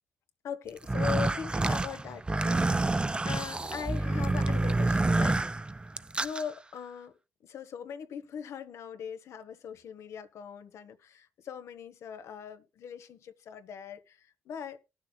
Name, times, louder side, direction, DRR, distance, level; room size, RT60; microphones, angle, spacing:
voice 1, 0.4-2.9 3.2-5.4 6.2-7.2 7.4-14.8, left 7 dB, 80° left, 1.0 m, -40 dB
sound 1, 0.8-6.4, right 2 dB, 20° right, 0.5 m, -28 dB
19.0 x 6.8 x 2.2 m
cardioid pair, 65°, 5 cm